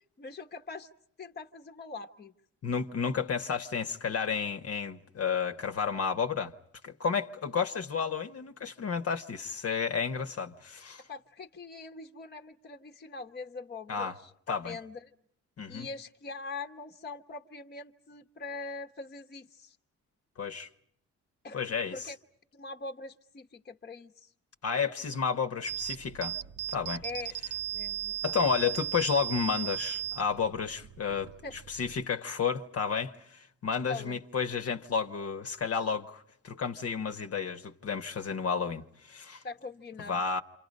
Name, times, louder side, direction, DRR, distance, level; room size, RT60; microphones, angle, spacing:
voice 1, 0.2-0.9 1.2-2.3 11.1-15.1 15.7-19.8 21.4-21.6 21.9-22.2 22.5-24.3 27.0-27.3 27.7-28.2 31.4-31.5 33.9-34.2 39.4-40.2, left 3 dB, 35° left, 1.2 m, -42 dB
voice 2, 2.6-6.5 6.8-11.0 13.9-14.1 14.5-14.8 15.6-15.9 20.4-20.7 21.5-22.0 24.6-26.4 26.7-27.0 28.2-39.4 40.1-40.4, left 6 dB, 50° left, 1.3 m, -31 dB
sound 1, 25.7-32.1, right 10 dB, 60° right, 0.9 m, -37 dB
28.0 x 27.5 x 5.4 m
cardioid pair, 90°, 30 cm